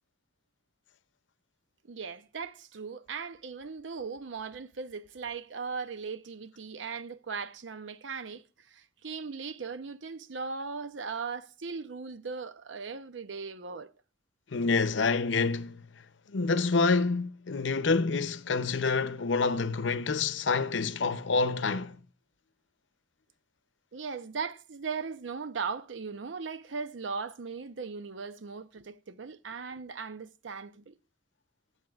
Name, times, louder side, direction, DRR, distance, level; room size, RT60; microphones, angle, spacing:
voice 1, 1.9-8.4 8.7-13.9 23.9-30.9, right 5 dB, 85° right, 0.7 m, -38 dB
voice 2, 14.5-15.8 16.3-22.0, left 4 dB, 85° left, 0.7 m, -27 dB
21.5 x 8.2 x 2.4 m
head